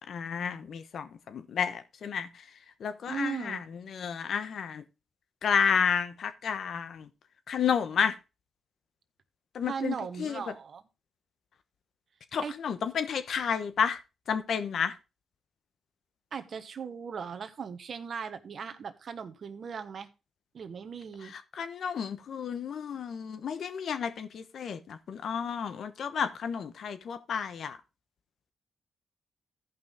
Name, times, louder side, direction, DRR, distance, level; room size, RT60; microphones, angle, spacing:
voice 1, 0.1-2.3 2.8-4.8 5.4-7.1 7.5-8.2 9.5-10.4 12.3-14.0 14.3-14.9 21.2-27.8, left 7 dB, 70° left, 1.0 m, -31 dB
voice 2, 3.1-3.6 9.7-10.8 12.4-12.5 16.3-20.1 20.5-21.3, right 6 dB, 60° right, 1.2 m, -38 dB
14.5 x 5.5 x 3.6 m
supercardioid pair, 60°, 0 cm